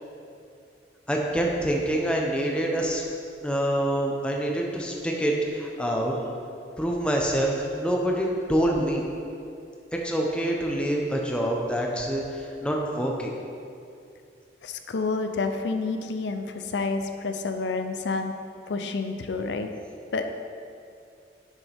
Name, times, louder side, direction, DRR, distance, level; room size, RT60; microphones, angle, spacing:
voice 1, 1.1-3.0 3.4-6.2 6.8-9.0 9.9-13.3, right 1 dB, 5° left, -1 dB, 0.8 m, -26 dB
voice 2, 14.6-18.4 18.7-19.7 20.1-20.3, left 3 dB, 85° left, 7 dB, 0.5 m, -29 dB
10.0 x 6.4 x 3.5 m, 2.5 s
head